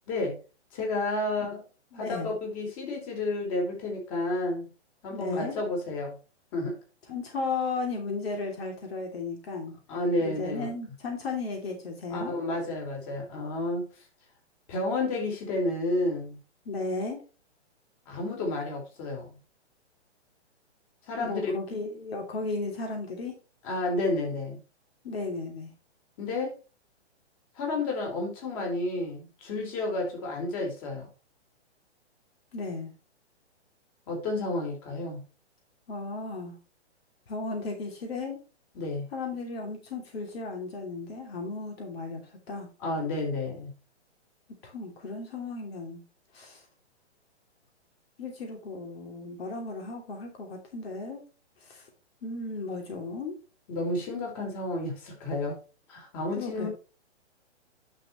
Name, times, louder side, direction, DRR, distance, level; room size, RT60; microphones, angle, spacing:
voice 1, 0.1-0.4 0.7-1.6 1.9-4.7 5.0-6.2 6.5-6.8 9.9-10.7 12.1-13.9 14.7-16.4 18.1-19.4 21.1-21.5 23.6-24.6 26.2-26.5 27.6-31.1 34.1-35.2 38.7-39.0 42.8-43.7 53.7-55.6 55.9-56.7, left 2 dB, 35° left, 4.5 m, -31 dB
voice 2, 1.9-2.3 5.1-5.6 7.1-9.8 10.2-12.3 16.6-17.2 21.1-23.4 25.0-25.7 32.5-32.9 35.9-36.6 37.3-38.4 39.1-42.7 44.6-46.0 46.3-46.6 48.2-51.2 51.6-51.9 52.2-53.3 56.4-56.7, left 3 dB, 60° left, 2.9 m, -35 dB
10.5 x 6.8 x 3.1 m
hypercardioid pair, 150°, 34 cm